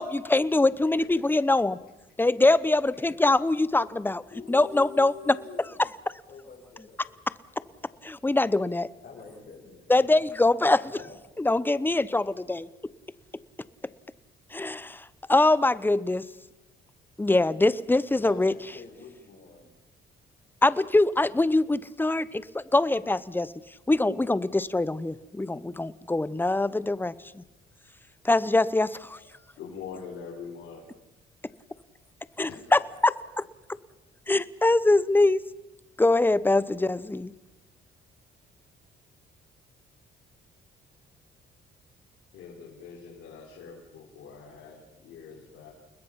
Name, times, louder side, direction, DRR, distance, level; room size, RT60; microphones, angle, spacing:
voice 1, 0.0-1.8 2.2-4.2 4.5-5.4 5.8-5.9 8.0-8.9 9.9-11.0 11.4-12.7 14.5-16.3 17.2-18.5 20.6-23.5 23.9-27.4 28.2-29.2 32.4-33.1 34.3-35.4 36.0-37.3, left 2 dB, 10° left, 17 dB, 0.8 m, -23 dB
voice 2, 4.3-5.8 6.3-7.2 7.5-8.0 9.0-10.1 10.9-11.2 18.2-19.7 32.5-32.6, left 4 dB, 50° left, 0 dB, 6.0 m, -46 dB
voice 3, 29.6-30.8 32.4-32.6 42.3-45.7, left 6 dB, 85° left, -4 dB, 4.8 m, -43 dB
29.5 x 20.5 x 5.8 m, 0.97 s
cardioid pair, 90°, 20 cm